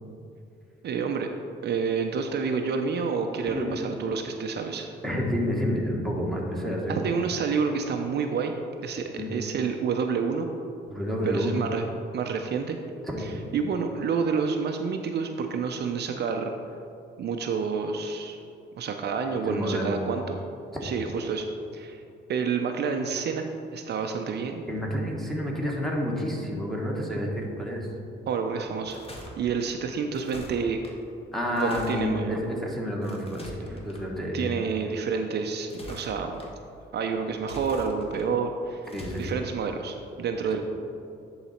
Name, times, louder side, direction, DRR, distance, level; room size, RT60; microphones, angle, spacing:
voice 1, 0.8-1.3 1.6-4.9 6.9-8.5 8.8-10.5 11.2-11.8 12.1-12.8 13.2-16.5 17.2-18.4 18.8-20.4 20.8-21.4 21.7-22.0 22.3-23.5 23.7-24.6 28.3-29.0 29.4-30.8 31.6-32.3 34.3-36.4 36.9-38.9 39.2-40.6, right 5 dB, 55° right, 4 dB, 0.5 m, -29 dB
voice 2, 5.0-6.9 9.2-9.3 10.9-11.5 13.1-13.2 19.4-20.0 20.7-20.9 24.7-27.9 31.3-34.5 38.9-39.3, equal, ahead, -2 dB, 1.5 m, -29 dB
sound 1, 28.7-29.3 30.1-30.9 31.5-32.1 33.0-34.0 35.5-36.5 37.4-38.3 38.9-39.3, left 1 dB, 30° left, 1.3 m, -43 dB
10.0 x 4.0 x 4.3 m, 2.7 s
cardioid pair, 90°, 20 cm